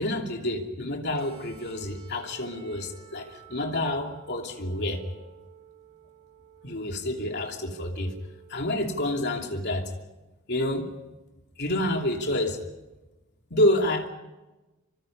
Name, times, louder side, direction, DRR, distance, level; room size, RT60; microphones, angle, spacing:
voice 1, 0.0-5.0 6.6-8.1 8.5-9.9 10.5-10.9 11.6-12.6 13.5-14.1, left 1 dB, 50° left, 3 dB, 2.9 m, -28 dB
sound 1, 1.1-9.2, right 9 dB, 80° right, 6.7 m, -51 dB
27.0 x 25.0 x 5.5 m, 1.1 s
head